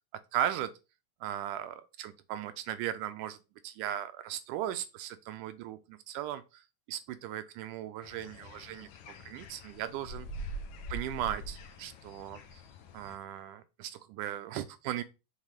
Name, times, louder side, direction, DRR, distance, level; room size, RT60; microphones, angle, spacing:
voice 1, 0.3-0.7 1.2-3.4 3.6-6.6 6.9-10.3 10.9-12.6 12.9-15.0, right 11 dB, 80° right, 2.0 m, -37 dB
sound 1, 8.0-13.2, right 1 dB, 70° left, 2.0 m, -44 dB
7.3 x 4.0 x 3.4 m
omnidirectional pair, 3.8 m